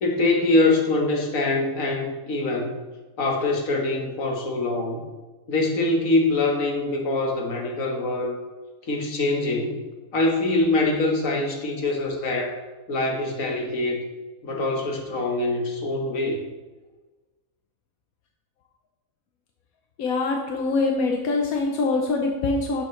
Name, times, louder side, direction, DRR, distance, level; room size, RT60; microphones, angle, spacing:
voice 1, 0.0-2.8 3.2-5.1 5.5-8.4 8.8-9.8 10.1-12.6 12.9-14.0 14.4-16.5, left 2 dB, 70° left, 1 dB, 1.7 m, -24 dB
voice 2, 20.0-22.8, left 3 dB, 90° left, 2 dB, 1.3 m, -24 dB
11.0 x 7.3 x 3.2 m, 1.2 s
omnidirectional pair, 1.4 m